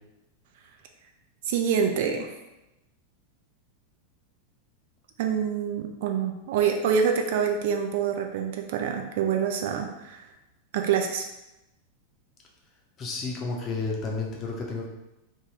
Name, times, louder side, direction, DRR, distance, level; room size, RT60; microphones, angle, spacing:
voice 1, 1.5-2.3 5.2-10.3 10.7-11.3, right 7 dB, 50° right, 3 dB, 0.3 m, -26 dB
voice 2, 13.0-14.9, left 3 dB, 30° left, -1 dB, 0.6 m, -31 dB
2.8 x 2.2 x 3.3 m, 0.95 s
figure-of-eight pair, 90°, 0 cm